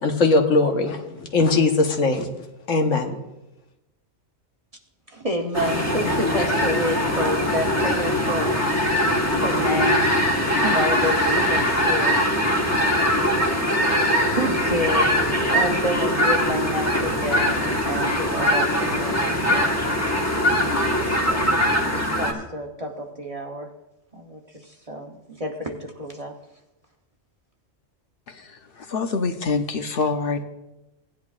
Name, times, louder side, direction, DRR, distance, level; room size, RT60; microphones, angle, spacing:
voice 1, 0.0-2.3 2.7-3.1, left 3 dB, 85° left, 3 dB, 1.5 m, -20 dB
voice 2, 5.1-8.7 9.4-10.1 10.6-12.3 14.3-19.7 20.5-23.7 24.1-26.4, equal, 30° right, 2 dB, 0.9 m, -29 dB
sound 1, 5.5-22.3, equal, 15° left, 1.2 m, -22 dB
voice 3, 28.8-30.4, left 4 dB, 55° left, 7 dB, 0.9 m, -25 dB
17.0 x 10.5 x 2.4 m, 0.97 s
omnidirectional pair, 1.3 m